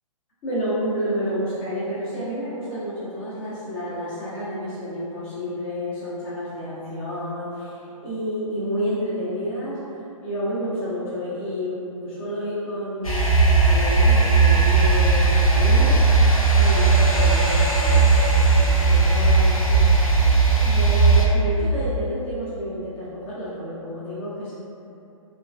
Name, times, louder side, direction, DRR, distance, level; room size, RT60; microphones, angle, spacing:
voice 1, 0.4-9.8 10.2-16.0 16.3-24.6, equal, 20° left, -10 dB, 0.4 m, -30 dB
sound 1, 13.0-21.3, right 4 dB, 80° left, 0.6 m, -17 dB
3.0 x 2.4 x 2.2 m, 2.8 s
figure-of-eight pair, 125°, 18 cm